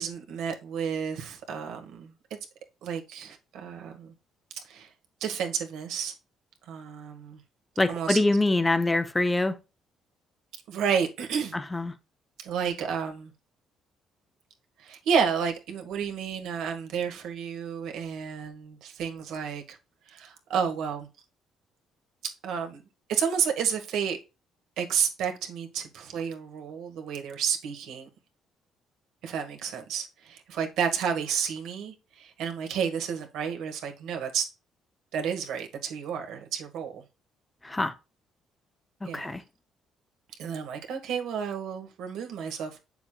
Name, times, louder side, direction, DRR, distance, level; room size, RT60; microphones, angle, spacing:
voice 1, 0.0-2.4 2.8-4.1 4.7-4.9 5.2-6.1 6.7-7.4 7.9-8.2 10.7-11.5 12.4-13.3 14.8-19.8 20.1-21.1 22.4-22.8 23.1-24.2 24.8-28.1 29.2-34.5 35.1-37.0 39.1-39.3 40.4-42.8, right 7 dB, 75° right, 1.8 m, -31 dB
voice 2, 7.8-9.6 11.5-11.9 37.6-37.9 39.0-39.4, left 2 dB, 10° left, 0.5 m, -25 dB
8.4 x 6.9 x 2.3 m
cardioid pair, 175°, 0 cm